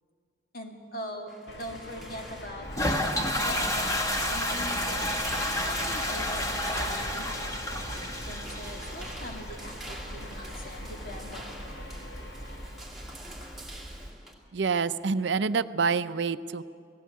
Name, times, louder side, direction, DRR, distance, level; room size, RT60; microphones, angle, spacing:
voice 1, 0.5-5.1 5.5-11.5, left 1 dB, 50° left, 2 dB, 2.1 m, -42 dB
sound 1, 1.3-14.3, right 1 dB, ahead, 2.6 m, -46 dB
sound 2, 1.5-13.1, left 1 dB, 65° left, 1.8 m, -45 dB
Toilet flush, 2.6-14.1, left 1 dB, 20° left, 1.3 m, -32 dB
voice 2, 14.5-16.6, right 5 dB, 75° right, 13 dB, 0.5 m, -27 dB
17.5 x 15.5 x 9.5 m, 2.3 s
head